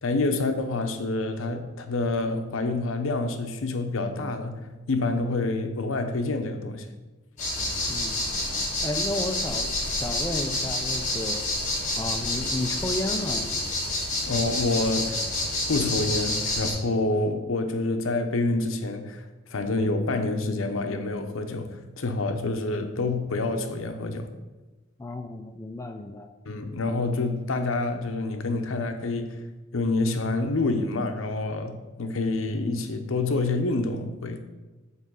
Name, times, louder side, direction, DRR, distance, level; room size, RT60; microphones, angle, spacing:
voice 1, 0.0-6.9 14.3-15.2 15.7-19.2 19.5-24.3 26.5-29.4 29.7-34.4, left 2 dB, 75° left, 7 dB, 0.8 m, -27 dB
sound 1, 7.4-16.7, left 1 dB, 40° left, 2.4 m, -28 dB
voice 2, 7.9-8.2 8.8-11.5 12.0-13.6 25.0-26.3, left 1 dB, 15° left, 5 dB, 0.4 m, -32 dB
5.6 x 4.6 x 6.2 m, 1.2 s
head